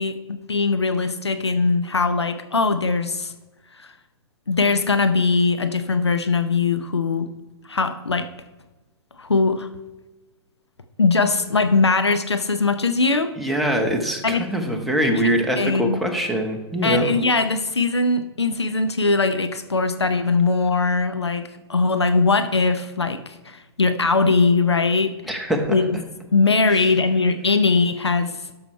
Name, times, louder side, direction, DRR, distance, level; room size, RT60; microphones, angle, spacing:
voice 1, 0.0-3.3 3.8-3.9 4.5-7.3 7.7-8.3 9.2-9.7 11.0-13.3 14.2-14.4 15.0-15.3 15.6-16.0 16.8-25.1 25.7-26.0 26.3-28.3, left 4 dB, 80° left, 9 dB, 0.7 m, -21 dB
voice 2, 13.4-17.1 25.3-25.8 26.7-26.9, equal, ahead, 2 dB, 1.3 m, -23 dB
12.0 x 6.0 x 4.4 m, 1.1 s
figure-of-eight pair, 110°, 14 cm